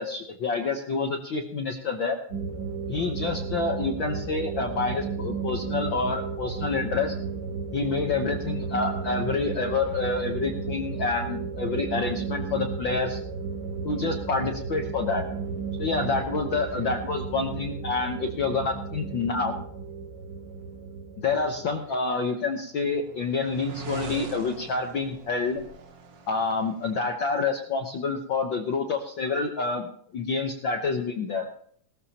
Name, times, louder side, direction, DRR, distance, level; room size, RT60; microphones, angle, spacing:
voice 1, 0.0-2.2 2.9-7.1 7.7-13.2 13.8-15.2 15.8-19.6 21.2-25.6 26.3-31.5, left 4 dB, 70° left, 3 dB, 1.1 m, -28 dB
sound 1, 2.3-21.8, right 5 dB, 30° right, 4.1 m, -34 dB
sound 2, 22.3-27.1, right 5 dB, 55° right, 2.1 m, -42 dB
18.5 x 14.0 x 2.9 m, 0.63 s
omnidirectional pair, 3.6 m